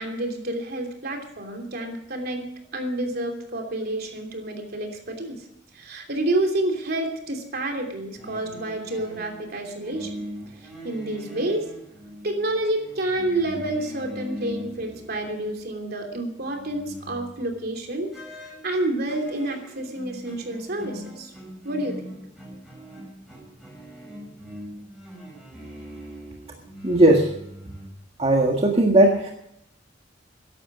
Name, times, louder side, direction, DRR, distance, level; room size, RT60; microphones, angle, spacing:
voice 1, 0.0-2.4 2.7-5.4 5.7-10.2 10.8-11.7 12.2-18.1 18.6-21.3 21.6-22.0, right 1 dB, 55° right, 3 dB, 3.1 m, -29 dB
sound 1, 8.2-15.7 16.0-17.6 18.1-27.9, equal, ahead, 6.5 m, -41 dB
voice 2, 26.8-27.3 28.2-29.3, right 1 dB, 30° right, 0 dB, 1.7 m, -17 dB
14.0 x 11.5 x 6.2 m, 0.77 s
head